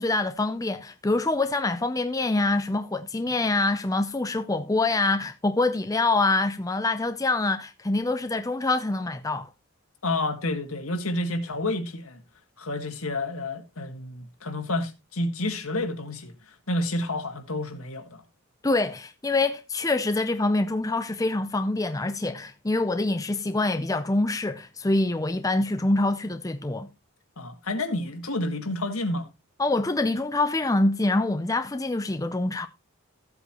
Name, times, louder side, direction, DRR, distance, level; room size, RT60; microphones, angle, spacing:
voice 1, 0.0-9.5 18.6-26.9 29.6-32.7, left 2 dB, 15° left, 0.5 m, -25 dB
voice 2, 10.0-12.2 12.6-18.2 27.4-29.3, left 2 dB, 75° left, 1.9 m, -30 dB
15.0 x 8.1 x 3.0 m
head